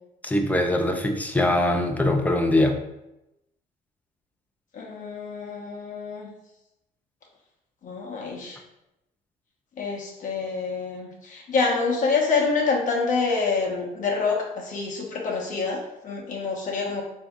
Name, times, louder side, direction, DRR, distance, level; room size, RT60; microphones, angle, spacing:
voice 1, 0.2-2.8, left 1 dB, 10° left, 4 dB, 0.4 m, -22 dB
voice 2, 4.7-6.3 7.8-8.6 9.8-17.0, left 4 dB, 50° left, -1 dB, 0.8 m, -27 dB
3.6 x 2.7 x 3.5 m, 0.91 s
cardioid pair, 110°, 17 cm